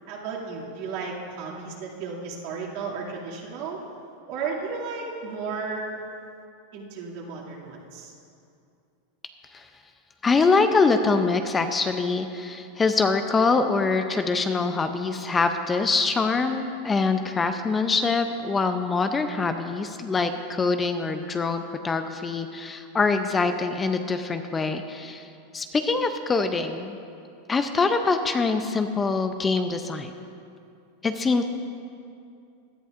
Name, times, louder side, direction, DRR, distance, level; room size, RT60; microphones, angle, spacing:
voice 1, 0.1-3.8 4.3-6.0 6.7-8.1, right 4 dB, 60° right, -4 dB, 2.4 m, -34 dB
voice 2, 10.2-25.3 25.5-27.0 27.5-30.1 31.0-31.4, left 4 dB, 15° left, 8 dB, 0.5 m, -24 dB
17.0 x 11.0 x 2.5 m, 2.5 s
supercardioid pair, 130°, 0 cm